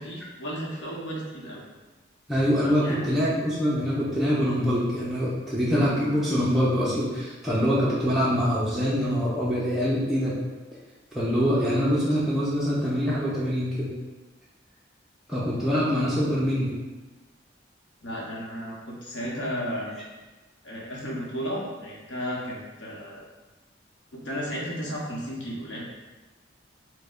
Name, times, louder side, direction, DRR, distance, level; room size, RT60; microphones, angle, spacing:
voice 1, 0.0-1.6 2.8-3.0 18.0-19.9 20.6-23.2 24.1-25.9, equal, 80° left, -4 dB, 0.9 m, -34 dB
voice 2, 2.3-10.3 11.1-13.9 15.3-16.8, equal, ahead, -9 dB, 0.4 m, -24 dB
4.5 x 2.1 x 2.4 m, 1.2 s
head